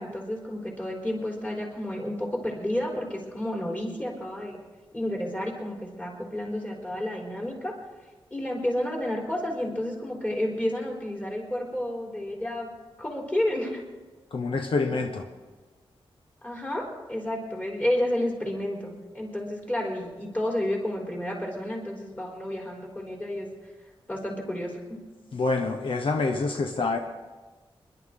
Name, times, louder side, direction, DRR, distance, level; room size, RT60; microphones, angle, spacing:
voice 1, 0.0-4.6 4.9-7.7 8.3-12.7 13.0-13.8 16.4-23.5 24.1-25.0, left 1 dB, 15° left, -2 dB, 3.9 m, -31 dB
voice 2, 14.3-15.2 25.3-27.0, left 3 dB, 70° left, 4 dB, 1.1 m, -26 dB
27.5 x 11.5 x 3.8 m, 1.3 s
wide cardioid pair, 170°, 9 cm